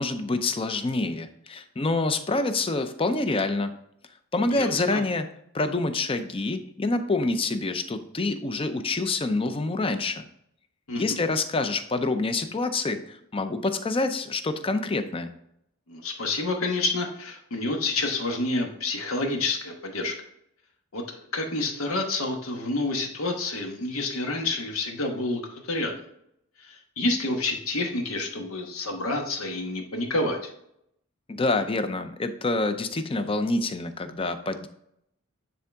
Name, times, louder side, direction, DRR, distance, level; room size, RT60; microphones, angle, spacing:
voice 1, 0.0-3.7 4.3-5.3 5.5-10.2 10.9-15.3 31.3-34.7, left 3 dB, 25° left, 9 dB, 0.5 m, -27 dB
voice 2, 4.5-5.0 10.9-11.2 15.9-20.1 20.9-25.4 25.7-26.0 26.6-30.5, left 2 dB, 80° left, 3 dB, 1.2 m, -28 dB
9.4 x 3.8 x 3.5 m, 0.73 s
head